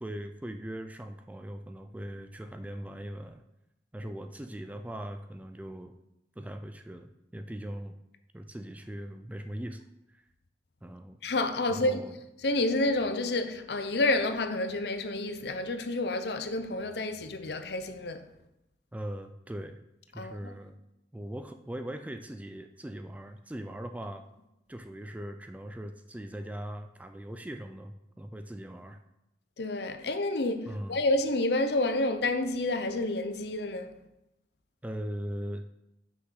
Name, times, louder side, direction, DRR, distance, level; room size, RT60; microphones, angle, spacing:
voice 1, 0.0-3.4 3.9-5.9 6.4-8.0 8.3-9.8 10.1-10.3 10.8-11.2 11.7-12.1 18.9-19.8 20.1-20.8 21.1-24.2 24.7-29.0 30.6-31.0 34.8-35.6, right 1 dB, 10° right, 0.3 m, -40 dB
voice 2, 11.2-12.0 12.4-18.2 20.2-20.5 29.6-33.9, left 2 dB, 60° left, 0.7 m, -29 dB
6.0 x 6.0 x 5.7 m
head